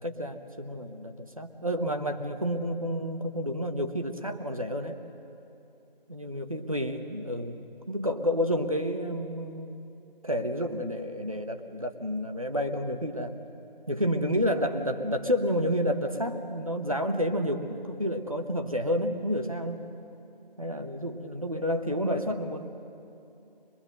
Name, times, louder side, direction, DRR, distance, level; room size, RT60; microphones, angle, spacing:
voice 1, 0.0-5.0 6.1-9.8 10.2-13.3 13.9-19.8 20.6-22.7, equal, 35° right, 5 dB, 1.1 m, -30 dB
22.5 x 22.0 x 6.6 m, 2.8 s
figure-of-eight pair, 170°, 29 cm